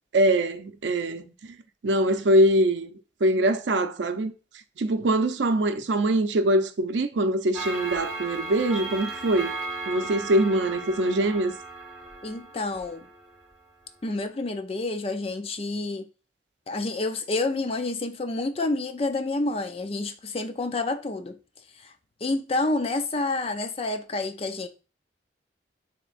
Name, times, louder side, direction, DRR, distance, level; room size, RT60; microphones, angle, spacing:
voice 1, 0.1-1.3 1.8-2.9 3.2-4.3 4.8-9.5 9.9-11.5, right 1 dB, 85° right, 0.5 m, -23 dB
Clock, 7.5-13.5, right 3 dB, ahead, 1.6 m, -36 dB
voice 2, 12.2-13.1 14.0-16.1 16.7-21.4 21.8-21.9 22.2-24.7, left 2 dB, 30° left, 0.4 m, -29 dB
7.2 x 2.9 x 2.4 m
head